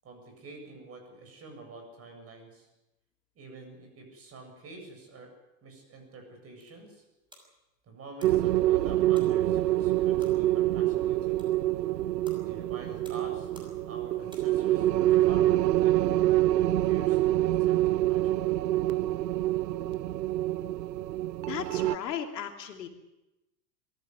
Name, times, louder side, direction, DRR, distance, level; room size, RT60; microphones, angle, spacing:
voice 1, 0.0-2.7 3.3-5.3 5.6-7.1 7.8-11.4 12.4-18.4, right 3 dB, 30° right, 4 dB, 8.0 m, -47 dB
sound 1, 6.3-14.9, equal, 10° right, 6.1 m, -59 dB
sound 2, 8.2-22.0, right 15 dB, 90° right, 0.8 m, -26 dB
voice 2, 21.5-22.9, left 9 dB, 85° left, 5 dB, 2.9 m, -36 dB
22.0 x 14.5 x 9.7 m, 0.97 s
hypercardioid pair, 120°, 48 cm